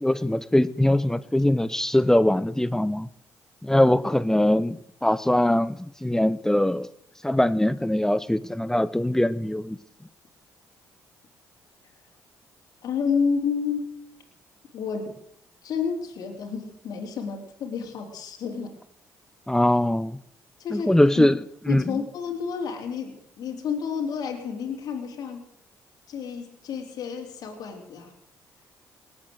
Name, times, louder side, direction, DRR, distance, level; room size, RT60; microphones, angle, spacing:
voice 1, 0.0-3.1 3.6-6.9 7.2-9.8 19.5-20.2 20.7-22.0, left 1 dB, 5° left, 0.7 m, -22 dB
voice 2, 12.8-14.0 14.7-15.1 15.6-18.8 20.6-20.9 21.2-21.3 21.7-25.4 26.1-28.1, left 6 dB, 65° left, 3.6 m, -30 dB
19.5 x 8.8 x 8.0 m
supercardioid pair, 65°, 7 cm